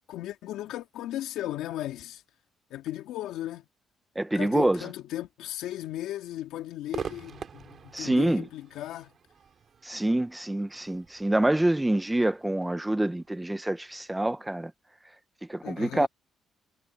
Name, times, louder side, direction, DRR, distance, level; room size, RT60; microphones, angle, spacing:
voice 1, 0.1-2.2 2.7-3.6 4.3-9.1 15.6-16.1, left 13 dB, 90° left, 3.7 m, -36 dB
voice 2, 4.1-4.9 7.9-8.5 9.8-14.7 15.5-16.1, right 1 dB, 10° right, 1.3 m, -26 dB
Crowd / Fireworks, 6.9-14.2, right 7 dB, 50° right, 3.6 m, -45 dB
cardioid pair, 90°, 0 cm